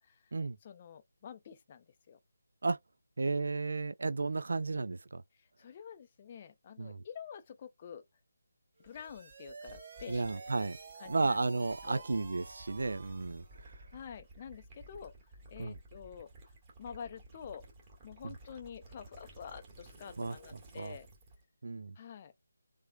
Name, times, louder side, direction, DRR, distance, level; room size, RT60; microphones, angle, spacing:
voice 1, 0.6-2.2 5.4-8.0 8.8-10.6 11.0-11.4 11.8-12.0 13.9-15.1 15.5-16.3 16.8-17.7 18.0-21.1 22.0-22.3, left 7 dB, 30° left, 0.4 m, -48 dB
voice 2, 3.2-5.2 6.8-7.0 10.1-10.8 11.1-13.7 15.6-15.8 20.2-20.3 20.8-21.0 21.6-22.0, right 3 dB, 65° right, 0.4 m, -33 dB
Gurgling / Liquid, 8.8-21.4, right 2 dB, 20° right, 1.5 m, -55 dB
sound 1, 8.8-13.6, right 4 dB, 45° right, 1.0 m, -50 dB
3.4 x 3.2 x 2.3 m
figure-of-eight pair, 165°, 0 cm